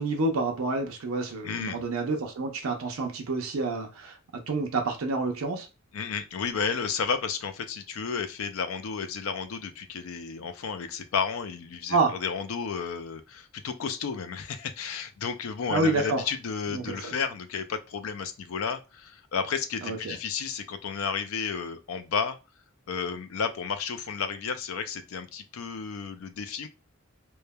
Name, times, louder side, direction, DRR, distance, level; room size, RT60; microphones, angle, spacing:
voice 1, 0.0-4.2 4.5-5.7 11.9-12.2 15.7-16.2 16.7-17.1 19.8-20.2, right 3 dB, 85° right, 0.6 m, -28 dB
voice 2, 1.4-1.8 5.9-22.4 22.9-26.7, left 6 dB, 80° left, 0.4 m, -32 dB
3.1 x 2.1 x 2.2 m
head